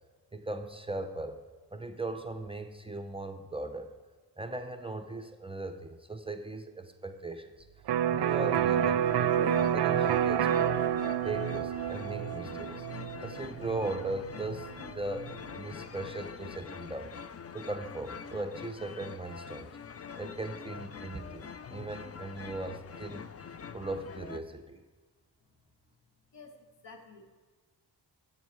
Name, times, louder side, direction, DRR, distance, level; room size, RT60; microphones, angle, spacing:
voice 1, 0.3-1.4 1.7-3.9 4.4-7.7 8.1-10.8 11.2-12.7 13.2-17.1 17.5-19.7 20.2-23.2 23.7-24.8, right 2 dB, 15° right, 7 dB, 0.6 m, -38 dB
Electric guitar, 7.9-15.5, right 9 dB, 70° right, 0.5 m, -29 dB
sound 1, 8.2-24.4, left 6 dB, 35° left, 0.4 m, -45 dB
voice 2, 26.3-27.3, left 3 dB, 85° left, 5 dB, 1.4 m, -51 dB
10.0 x 7.9 x 4.6 m, 1.4 s
wide cardioid pair, 110°, 42 cm